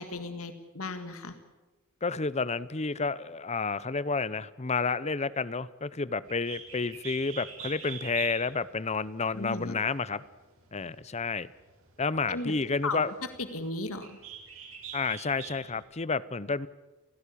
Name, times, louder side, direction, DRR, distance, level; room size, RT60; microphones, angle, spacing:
voice 1, 0.0-1.3 9.3-9.8 12.3-12.5 12.8-13.0 13.5-14.2, left 2 dB, 80° left, 9 dB, 1.8 m, -35 dB
voice 2, 2.0-10.2 10.7-11.5 12.0-13.1 14.9-16.7, left 4 dB, 30° left, 18 dB, 0.7 m, -30 dB
Bird, 6.3-15.8, right 7 dB, 70° right, 5.6 m, -46 dB
29.0 x 16.5 x 8.6 m, 1.1 s
head